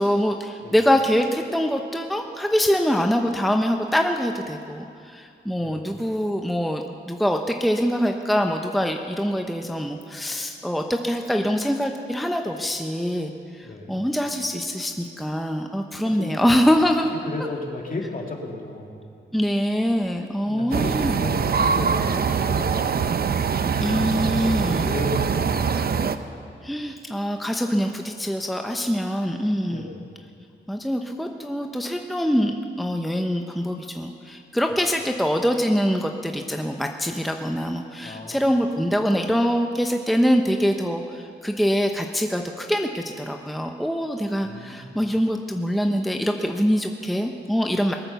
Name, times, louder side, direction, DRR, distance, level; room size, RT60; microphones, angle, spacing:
voice 1, 0.0-17.1 19.3-21.2 23.8-24.9 26.6-29.9 30.7-47.9, equal, ahead, 4 dB, 0.8 m, -24 dB
voice 2, 13.6-14.0 16.0-16.6 17.1-19.0 20.5-23.2 24.6-26.1 29.6-30.1 38.0-38.6 44.4-45.0, left 2 dB, 45° left, 1 dB, 2.4 m, -34 dB
sound 1, 20.7-26.2, right 6 dB, 55° right, 0.7 m, -23 dB
20.0 x 8.9 x 6.8 m, 2.5 s
cardioid pair, 75°, 20 cm